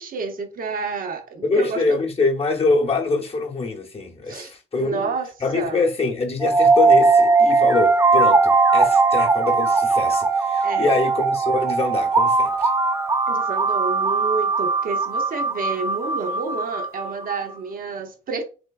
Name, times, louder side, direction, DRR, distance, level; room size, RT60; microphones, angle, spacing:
voice 1, 0.0-1.8 4.3-4.5 4.8-5.3 5.5-5.8 10.6-10.9 13.3-18.4, right 4 dB, 45° right, 0.7 m, -29 dB
voice 2, 1.4-5.1 5.4-12.7, left 3 dB, 30° left, 0.8 m, -24 dB
sound 1, 6.4-17.4, right 4 dB, 15° right, 0.3 m, -19 dB
3.4 x 3.2 x 2.3 m
cardioid pair, 90°, 20 cm